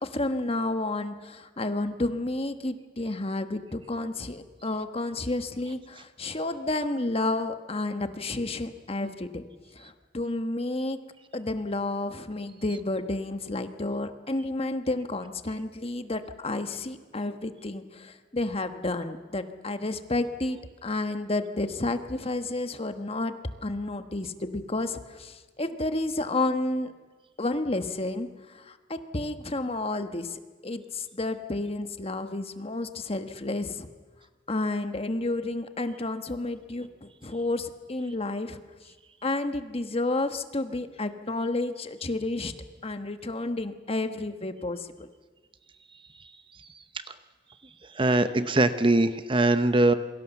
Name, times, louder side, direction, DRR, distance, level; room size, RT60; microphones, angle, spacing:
voice 1, 0.0-9.4 9.7-11.0 11.3-23.4 23.6-26.9 27.4-33.9 34.5-38.6 39.2-42.5 42.8-45.1, left 2 dB, 30° left, 9 dB, 1.3 m, -31 dB
voice 2, 48.0-49.9, right 2 dB, 25° right, 11 dB, 0.8 m, -22 dB
27.0 x 23.0 x 7.2 m, 1.4 s
head